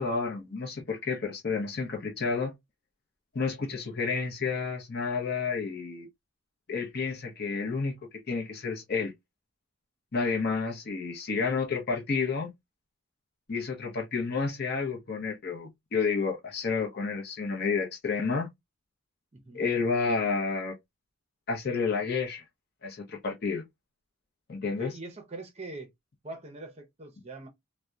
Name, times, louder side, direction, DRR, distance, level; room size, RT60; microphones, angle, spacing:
voice 1, 0.0-2.5 3.3-6.1 6.7-7.9 8.3-9.1 10.1-12.5 13.5-18.5 19.5-20.7 21.5-22.4 22.8-23.6 24.5-25.0, left 4 dB, 45° left, 0.7 m, -30 dB
voice 2, 19.3-19.7 24.6-25.9 26.2-27.5, right 2 dB, 30° right, 0.6 m, -43 dB
2.7 x 2.1 x 2.2 m
head